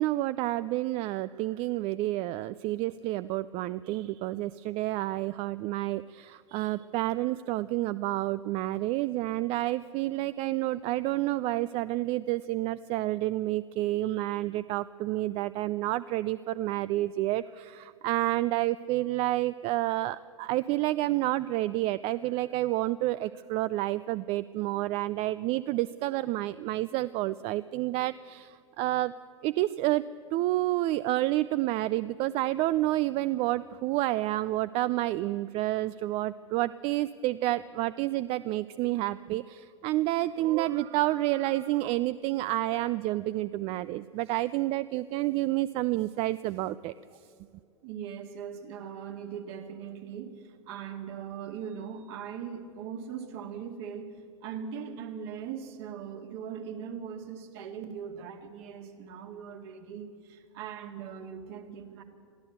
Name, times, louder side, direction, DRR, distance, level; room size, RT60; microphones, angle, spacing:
voice 1, 0.0-29.1 29.4-30.0 30.3-46.9, right 16 dB, 35° right, 16 dB, 0.4 m, -29 dB
voice 2, 47.8-50.3 50.7-54.1 54.4-62.0, right 7 dB, 50° right, 6 dB, 2.2 m, -40 dB
22.5 x 14.5 x 8.0 m, 2.3 s
figure-of-eight pair, 95°, 17 cm